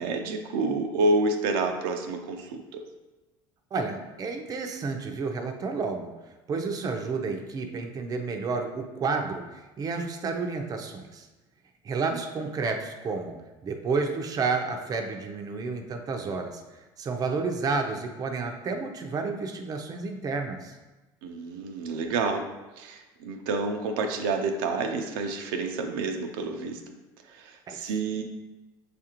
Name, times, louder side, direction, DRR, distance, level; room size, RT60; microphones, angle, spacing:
voice 1, 0.0-2.8 12.1-12.2 21.2-22.5 22.8-26.9 27.2-28.2, right 3 dB, 85° right, 4 dB, 0.5 m, -29 dB
voice 2, 3.7-6.1 6.5-11.3 11.8-16.6 17.0-20.7 27.7-27.9, right 4 dB, 35° right, 4 dB, 0.5 m, -31 dB
6.2 x 2.5 x 2.9 m, 1.1 s
supercardioid pair, 100°, 11 cm